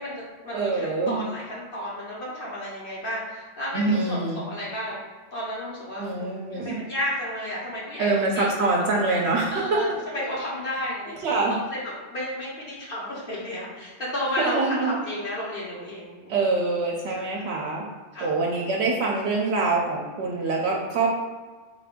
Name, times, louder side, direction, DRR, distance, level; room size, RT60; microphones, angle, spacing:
voice 1, 0.0-5.0 5.3-8.5 9.5-11.2 11.4-16.4 17.1-17.4 18.1-18.3, left 1 dB, 55° left, -6 dB, 0.9 m, -33 dB
voice 2, 0.5-1.2 3.7-4.4 6.0-6.8 8.0-9.8 10.2-10.3 11.2-11.6 14.4-15.0 16.3-17.8 18.2-21.1, right 3 dB, 75° right, -1 dB, 0.8 m, -25 dB
3.7 x 2.5 x 3.5 m, 1.4 s
omnidirectional pair, 1.2 m